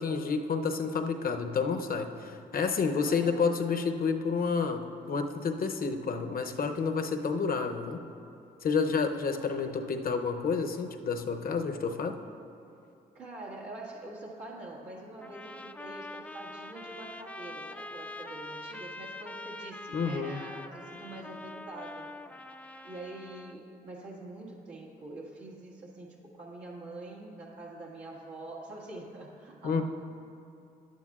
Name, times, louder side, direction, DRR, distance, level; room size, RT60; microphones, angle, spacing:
voice 1, 0.0-4.8 5.1-8.0 8.6-12.2 19.9-20.4 29.6-29.8, left 5 dB, 55° left, 6 dB, 0.7 m, -29 dB
voice 2, 3.0-3.6 9.4-9.6 13.1-22.1 22.8-29.8, right 2 dB, 80° right, -5 dB, 1.9 m, -45 dB
sound 1, 15.2-23.6, left 2 dB, 5° left, 0.4 m, -44 dB
11.5 x 9.3 x 2.4 m, 2.6 s
supercardioid pair, 55°, 18 cm